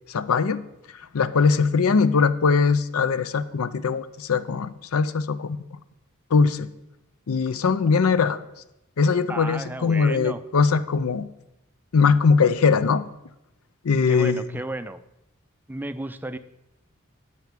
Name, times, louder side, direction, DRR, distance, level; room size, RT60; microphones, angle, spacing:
voice 1, 0.1-0.6 1.1-5.6 6.3-6.7 7.3-8.4 9.0-11.3 11.9-13.0 13.8-14.5, left 5 dB, 85° left, 15 dB, 0.5 m, -21 dB
voice 2, 9.3-10.4 14.1-15.0 15.7-16.4, right 2 dB, 10° right, 12 dB, 0.4 m, -33 dB
9.3 x 5.9 x 7.3 m, 0.88 s
head